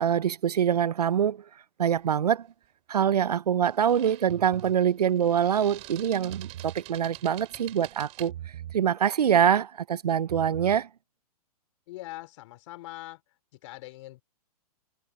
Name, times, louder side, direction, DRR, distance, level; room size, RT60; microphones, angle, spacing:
voice 1, 0.0-1.4 1.8-2.5 2.9-8.3 8.7-10.9, right 9 dB, 85° right, 0.6 m, -24 dB
sound 1, 2.0-2.2 3.6-8.3, right 20 dB, 35° right, 2.6 m, -47 dB
sound 2, 4.3-4.8 6.2-6.8 8.3-8.8 10.2-10.8, right 12 dB, 60° right, 6.3 m, -41 dB
voice 2, 11.9-13.2 13.6-14.2, left 18 dB, 50° left, 2.9 m, -42 dB
hypercardioid pair, 130°, 20 cm